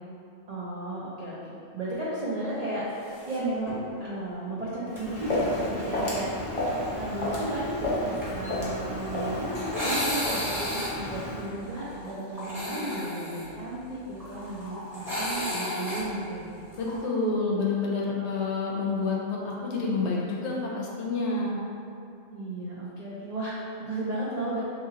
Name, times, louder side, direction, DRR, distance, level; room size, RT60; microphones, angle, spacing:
voice 1, 0.5-1.4 1.7-6.7 7.0-16.5 22.3-24.6, right 1 dB, 60° right, -8 dB, 0.4 m, -34 dB
sound 1, 3.1-3.4 3.7-3.8 5.0-5.2 8.2-17.0, equal, ahead, 0.8 m, -34 dB
Walk footsteps, 4.9-11.5, left 1 dB, 35° left, 0.6 m, -32 dB
voice 2, 16.8-21.6, left 3 dB, 70° left, -3 dB, 0.9 m, -28 dB
2.8 x 2.8 x 3.7 m, 2.6 s
omnidirectional pair, 1.3 m